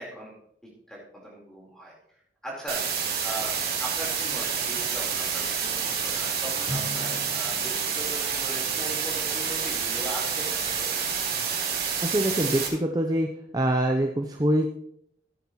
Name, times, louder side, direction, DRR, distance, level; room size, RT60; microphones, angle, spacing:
voice 1, 0.0-1.9 2.4-10.9, right 1 dB, 5° left, -4 dB, 4.0 m, -39 dB
sound 1, 2.7-12.7, right 6 dB, 55° right, 3.1 m, -28 dB
Drum, 6.7-8.4, left 1 dB, 85° left, 3.4 m, -38 dB
voice 2, 12.0-13.3 13.5-14.7, right 1 dB, 20° right, 3 dB, 0.6 m, -24 dB
14.5 x 9.2 x 3.0 m, 0.73 s
head